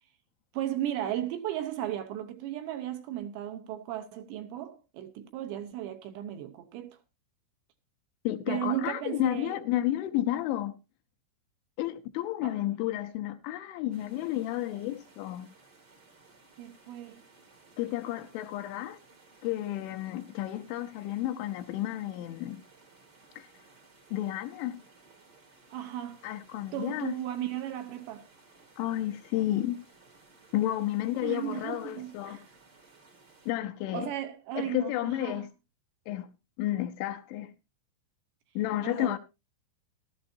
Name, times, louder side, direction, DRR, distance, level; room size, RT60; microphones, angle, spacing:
voice 1, 0.5-7.0 8.5-9.6 12.4-12.5 16.6-17.2 25.7-26.2 26.7-28.3 31.2-32.4 33.9-35.5 38.8-39.2, right 12 dB, 75° right, 2.8 m, -35 dB
voice 2, 8.2-10.8 11.8-15.5 17.8-19.0 19.4-22.6 23.4-23.5 24.1-24.8 26.2-27.1 28.8-29.8 30.5-32.4 33.5-34.1 34.6-35.5 36.1-36.3 36.6-37.5 38.6-39.2, left 14 dB, 80° left, 2.9 m, -31 dB
sound 1, 13.9-33.5, right 3 dB, 50° right, 1.2 m, -59 dB
15.5 x 13.0 x 2.7 m
omnidirectional pair, 5.6 m